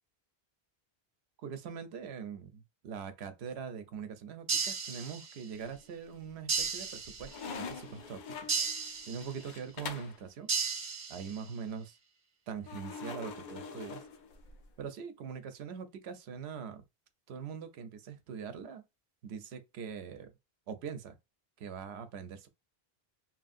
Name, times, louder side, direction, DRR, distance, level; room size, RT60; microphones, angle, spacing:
voice 1, 1.4-8.5 9.1-10.5 11.1-12.0 12.5-14.0 14.8-16.8 17.3-18.8 19.2-20.3 20.7-21.2 21.6-22.5, right 6 dB, 80° right, 0.8 m, -42 dB
sound 1, 4.5-5.5 6.5-7.5 8.5-9.5 10.5-11.5, right 5 dB, 45° right, 0.6 m, -35 dB
sound 2, 5.5-6.1 6.5-10.2 12.7-14.7, left 5 dB, 60° left, 0.6 m, -44 dB
2.9 x 2.5 x 2.4 m
omnidirectional pair, 1.1 m